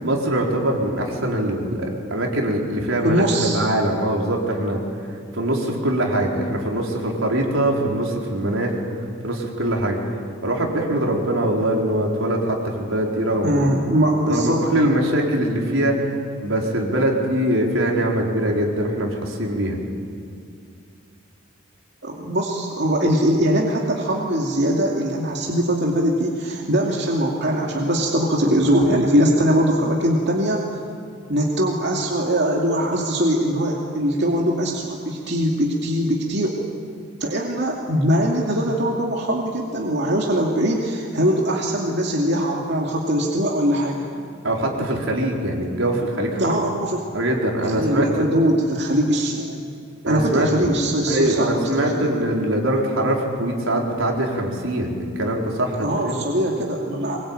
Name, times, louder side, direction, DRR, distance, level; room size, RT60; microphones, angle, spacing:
voice 1, 0.0-4.8 5.3-8.7 9.2-10.0 10.4-13.7 14.3-16.2 16.4-19.8 44.4-46.6 47.1-48.3 50.1-50.5 51.1-56.2, right 1 dB, 85° right, -1 dB, 4.4 m, -22 dB
voice 2, 3.0-3.6 13.4-14.6 22.0-30.6 31.3-36.6 37.2-44.1 46.4-47.0 47.6-49.6 50.0-52.1 55.8-57.2, equal, 60° right, -1 dB, 2.5 m, -21 dB
23.5 x 22.0 x 9.0 m, 2.4 s
head